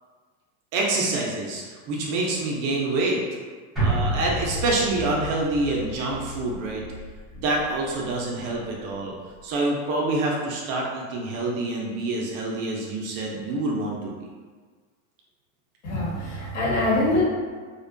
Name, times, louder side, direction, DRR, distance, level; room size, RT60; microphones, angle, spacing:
voice 1, 0.7-3.2 3.8-6.8 7.4-9.1 9.4-14.1, right 2 dB, 40° right, -2 dB, 0.4 m, -26 dB
sound 1, 3.8-8.2 8.5-8.6, right 1 dB, ahead, 0.8 m, -30 dB
voice 2, 15.8-17.2, left 2 dB, 80° left, -7 dB, 1.4 m, -24 dB
2.5 x 2.1 x 2.5 m, 1.5 s
supercardioid pair, 150°, 41 cm